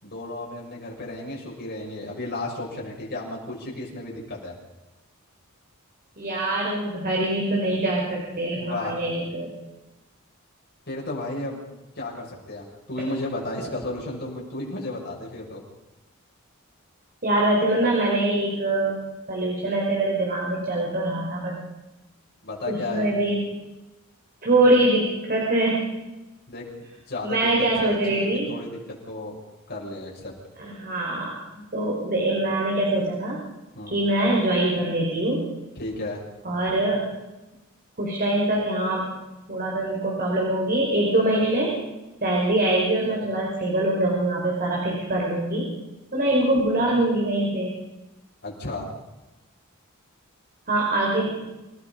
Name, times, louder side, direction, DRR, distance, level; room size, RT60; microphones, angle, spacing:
voice 1, 0.0-4.5 8.6-9.0 10.9-11.7 12.0-15.6 22.4-23.1 26.5-26.7 27.1-29.3 29.7-30.3 33.7-34.0 35.8-36.2 48.4-48.9, left 2 dB, 50° left, -3 dB, 6.6 m, -33 dB
voice 2, 6.2-9.5 17.2-19.0 19.3-21.5 22.7-23.5 24.4-25.8 27.2-28.5 30.6-33.4 33.9-35.4 36.4-37.0 38.0-39.1 39.5-41.7 42.2-45.7 46.1-47.7 50.7-51.3, right 1 dB, 45° right, -3 dB, 5.5 m, -23 dB
28.0 x 18.0 x 5.5 m, 1.0 s
head